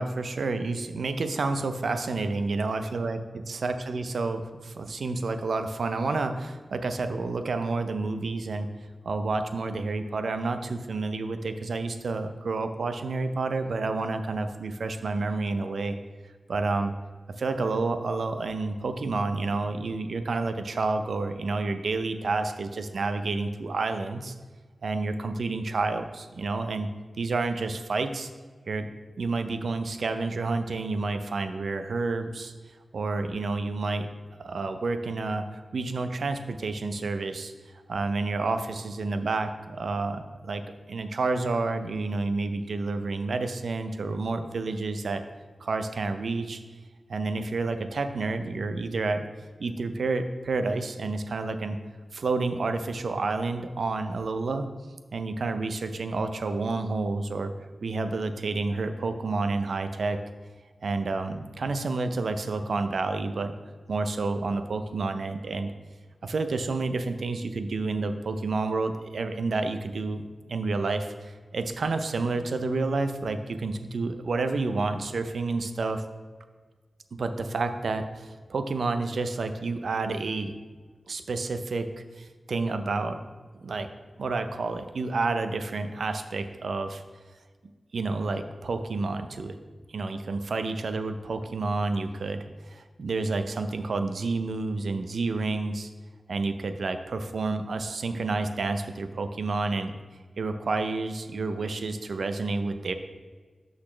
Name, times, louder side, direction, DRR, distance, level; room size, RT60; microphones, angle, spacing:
voice 1, 0.0-3.2 3.5-8.7 9.0-16.0 16.5-16.9 17.4-24.3 24.8-26.9 27.2-28.3 28.7-28.9 29.2-32.5 32.9-34.1 34.4-37.5 37.9-40.6 40.9-45.2 45.6-46.6 47.1-49.3 49.6-51.8 52.1-54.7 55.1-57.5 57.8-60.2 60.8-63.5 63.9-65.7 66.2-70.2 70.5-76.0 77.2-80.5 81.1-83.2 83.5-83.9 84.2-87.0 87.9-89.6 89.9-95.9 96.3-99.9 100.4-102.9, right 3 dB, 80° right, 8 dB, 0.5 m, -29 dB
12.0 x 4.0 x 3.2 m, 1.5 s
wide cardioid pair, 105°, 0 cm